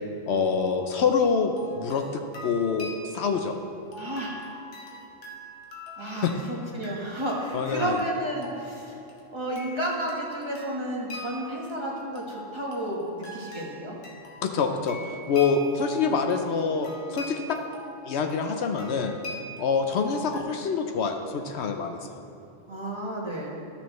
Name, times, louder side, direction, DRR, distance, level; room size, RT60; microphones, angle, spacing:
voice 1, 0.3-3.5 6.2-6.3 7.5-8.0 14.4-15.0 15.3-17.6 18.1-19.1 19.6-22.0, left 5 dB, 70° left, 5 dB, 0.9 m, -26 dB
sound 1, 1.4-20.4, left 1 dB, 90° left, 1.4 m, -43 dB
voice 2, 4.0-4.4 6.0-9.0 9.3-14.0 22.7-23.6, right 1 dB, 25° right, -4 dB, 1.2 m, -32 dB
13.0 x 6.9 x 3.1 m, 2.9 s
omnidirectional pair, 1.2 m